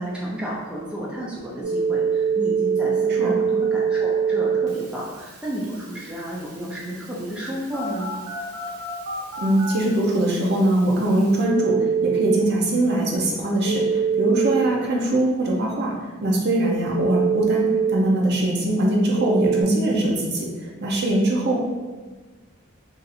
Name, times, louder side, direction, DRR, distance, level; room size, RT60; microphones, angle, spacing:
voice 1, 0.0-8.1, equal, 5° right, -6 dB, 0.4 m, -32 dB
Telephone, 1.6-12.4 13.6-14.7 16.9-17.9 19.2-19.6, right 6 dB, 85° right, 0.7 m, -25 dB
voice 2, 9.4-15.9 16.2-20.5 20.8-21.6, right 1 dB, 50° right, -2 dB, 0.6 m, -22 dB
2.7 x 2.5 x 4.0 m, 1.3 s
head